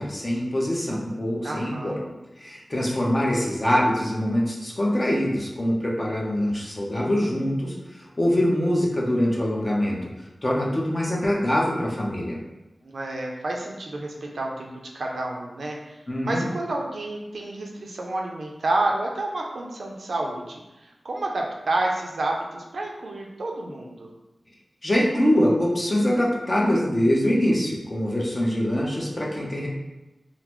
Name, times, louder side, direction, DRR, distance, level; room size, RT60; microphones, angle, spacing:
voice 1, 0.0-2.0 2.4-10.0 10.4-12.4 16.1-16.4 24.8-29.7, equal, 30° left, -3 dB, 0.7 m, -24 dB
voice 2, 1.4-2.1 12.8-14.7 14.9-16.0 16.2-24.1, right 2 dB, 75° right, 0 dB, 0.5 m, -29 dB
3.7 x 2.0 x 3.0 m, 1.0 s
wide cardioid pair, 80°, 0 cm